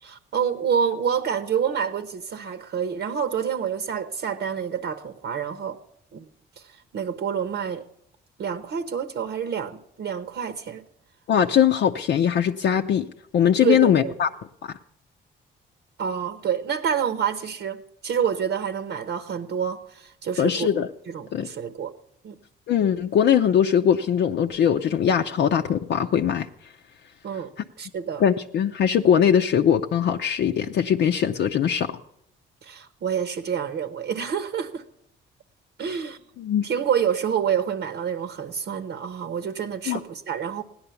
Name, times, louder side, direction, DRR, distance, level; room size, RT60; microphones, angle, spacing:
voice 1, 0.0-5.8 6.1-6.3 6.6-7.8 8.4-10.8 13.6-14.1 16.0-20.7 21.1-21.9 22.2-22.3 27.2-27.5 27.8-28.2 32.6-34.8 35.8-36.2 36.6-40.6, right 8 dB, 65° right, 9 dB, 0.9 m, -28 dB
voice 2, 11.3-13.1 13.3-14.3 20.4-20.9 21.3-21.5 22.7-26.5 28.2-32.0 36.4-36.7 39.9-40.0, left 8 dB, 65° left, 4 dB, 0.6 m, -21 dB
16.5 x 10.5 x 7.0 m, 0.74 s
cardioid pair, 90°, 20 cm